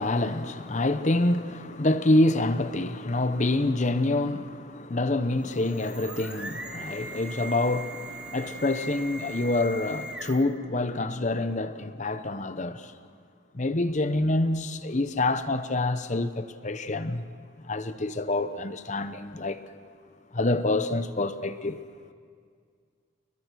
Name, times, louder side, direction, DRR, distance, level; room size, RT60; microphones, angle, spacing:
voice 1, 0.0-12.9 13.5-17.2 17.7-19.6 20.3-21.8, left 2 dB, 35° left, 0.8 m, -27 dB
sound 1, 5.3-10.6, right 2 dB, 5° right, 1.4 m, -40 dB
29.5 x 21.5 x 6.3 m
head